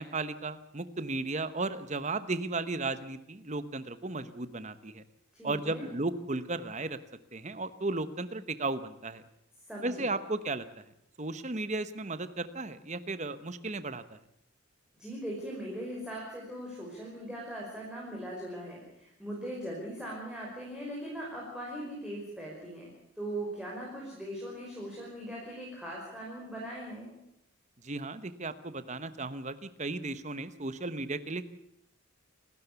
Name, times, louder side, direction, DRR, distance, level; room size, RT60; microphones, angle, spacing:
voice 1, 0.0-5.0 5.4-7.0 7.3-9.2 9.8-10.8 11.2-14.2 27.8-31.5, right 2 dB, 35° right, 12 dB, 1.0 m, -35 dB
voice 2, 5.3-5.8 9.7-10.1 15.0-22.9 23.2-27.1, right 1 dB, 5° right, -4 dB, 5.3 m, -40 dB
27.5 x 13.0 x 8.2 m, 0.79 s
head